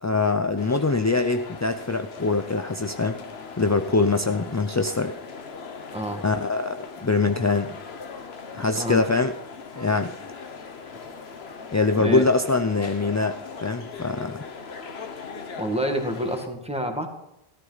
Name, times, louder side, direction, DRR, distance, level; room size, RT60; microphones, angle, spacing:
voice 1, 0.0-3.2 3.6-5.2 6.2-7.7 8.5-9.4 9.7-10.1 11.7-14.4, left 3 dB, 30° left, 7 dB, 0.3 m, -23 dB
sound 1, 0.6-16.5, left 5 dB, 80° left, 1.3 m, -40 dB
voice 2, 5.9-6.2 8.7-9.0 12.0-12.2 15.6-17.1, equal, 5° right, 3 dB, 1.8 m, -27 dB
14.5 x 13.0 x 4.0 m, 0.87 s
omnidirectional pair, 1.1 m